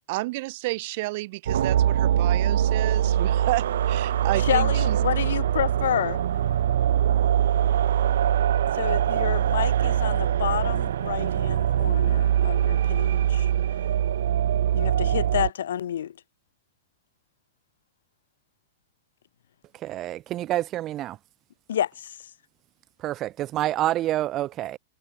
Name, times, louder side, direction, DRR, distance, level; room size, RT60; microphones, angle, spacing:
voice 1, 0.1-5.0, right 21 dB, 50° right, 1.7 m, -31 dB
sound 1, 1.5-15.5, right 10 dB, 80° right, 0.7 m, -23 dB
voice 2, 4.4-6.2 8.7-13.5 14.7-16.1 21.7-22.2, left 10 dB, 85° left, 1.8 m, -29 dB
voice 3, 19.7-21.2 23.0-24.8, right 14 dB, 30° right, 0.5 m, -28 dB
supercardioid pair, 145°, 0 cm